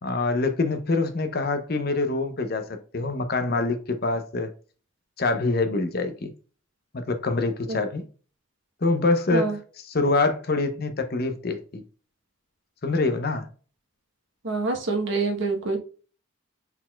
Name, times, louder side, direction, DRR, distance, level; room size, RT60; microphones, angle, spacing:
voice 1, 0.0-4.5 5.2-6.3 6.9-8.0 8.8-11.8 12.8-13.5, left 3 dB, 45° left, 0.6 m, -25 dB
voice 2, 14.4-15.8, right 3 dB, 60° right, 1.0 m, -26 dB
4.4 x 4.0 x 2.2 m
head